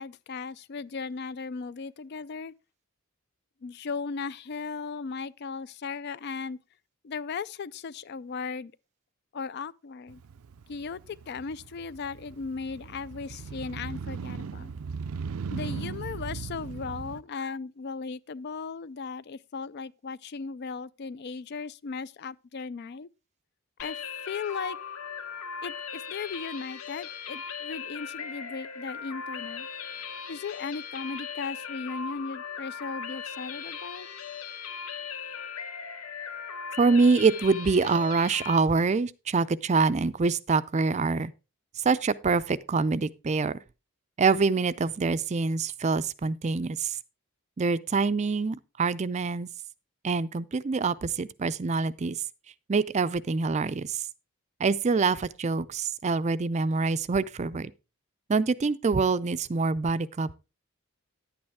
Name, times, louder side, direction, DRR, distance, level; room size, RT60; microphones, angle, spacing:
voice 1, 0.0-2.5 3.6-6.6 7.0-8.7 9.3-10.2 10.7-14.7 15.5-23.1 23.8-24.0 24.3-24.8 25.6-29.7 30.3-34.1, left 5 dB, 50° left, 0.4 m, -37 dB
Motorcycle, 10.1-17.2, right 5 dB, 85° right, 0.5 m, -38 dB
sound 1, 23.8-38.6, left 6 dB, 90° left, 1.0 m, -38 dB
voice 2, 36.8-41.3 41.8-43.6 44.2-47.0 47.6-49.5 50.0-52.2 52.7-54.0 54.6-57.7 58.3-60.3, right 4 dB, 30° right, 0.4 m, -25 dB
10.5 x 8.7 x 3.5 m
head